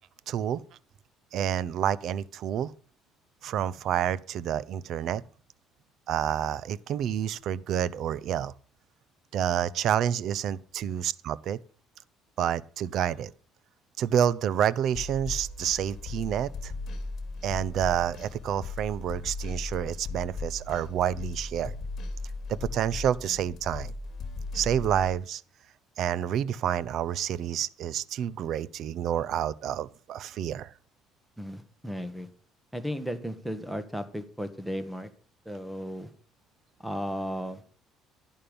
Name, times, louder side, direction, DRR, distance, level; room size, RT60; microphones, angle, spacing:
voice 1, 0.3-0.6 1.3-2.7 3.4-5.2 6.1-8.5 9.3-11.6 12.4-13.3 14.0-16.7 17.4-21.7 22.5-23.9 24.5-25.4 26.0-30.7, right 9 dB, 55° right, 0.6 m, -28 dB
sound 1, 14.9-25.2, left 3 dB, 50° left, 2.5 m, -37 dB
voice 2, 31.4-32.3 32.7-35.1 35.4-36.1 36.8-37.6, equal, 5° right, 1.5 m, -35 dB
11.5 x 11.0 x 5.2 m
cardioid pair, 135°, 0 cm